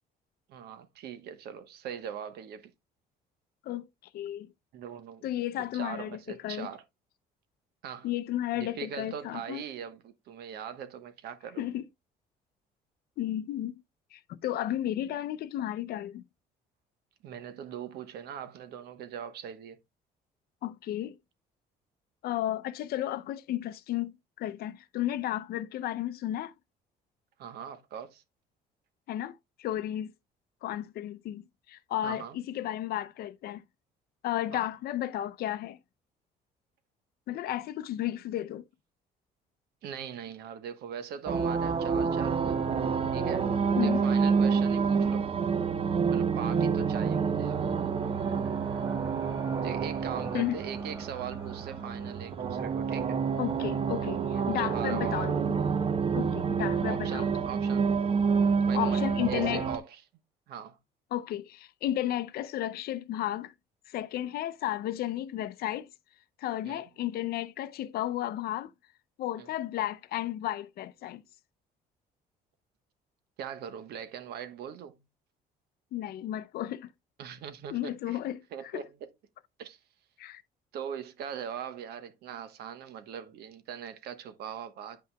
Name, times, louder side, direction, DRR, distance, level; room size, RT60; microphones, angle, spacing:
voice 1, 0.5-2.7 4.7-5.2 5.7-6.8 7.8-8.1 8.5-11.6 17.2-19.8 27.4-28.2 32.0-32.4 34.5-34.7 39.8-42.6 43.1-43.5 43.8-45.3 46.1-47.6 49.6-53.2 54.5-55.4 56.9-57.9 58.7-60.0 60.5-60.8 66.6-66.8 69.4-69.5 73.4-75.0 77.2-78.2 78.5-79.0 79.6-79.8 80.7-85.0, right 8 dB, 75° right, 1.1 m, -41 dB
voice 2, 4.1-4.5 5.2-6.7 8.0-9.6 11.6-11.8 13.2-13.8 14.1-16.2 20.6-21.2 22.2-26.5 29.1-30.1 30.6-33.6 34.2-35.8 37.3-38.6 43.8-44.1 50.3-50.6 53.4-55.6 56.1-57.3 58.7-59.7 61.1-63.5 63.9-65.9 66.4-68.7 69.2-71.2 75.9-76.9 77.7-78.4 78.7-78.8 80.2-80.4, left 13 dB, 65° left, 0.5 m, -33 dB
sound 1, 41.3-59.8, right 6 dB, 35° right, 0.7 m, -28 dB
sound 2, 47.8-55.4, right 2 dB, 15° right, 1.6 m, -49 dB
9.1 x 5.7 x 2.2 m
cardioid pair, 110°, 17 cm